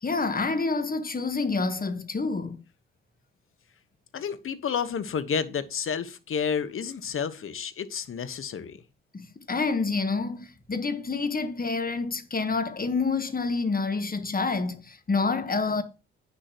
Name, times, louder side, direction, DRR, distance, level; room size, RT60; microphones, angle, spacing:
voice 1, 0.0-2.6 9.1-15.8, left 4 dB, 30° left, 1.6 m, -28 dB
voice 2, 4.1-8.8, left 7 dB, 45° left, 1.2 m, -30 dB
10.0 x 9.7 x 3.0 m
hypercardioid pair, 45°, 29 cm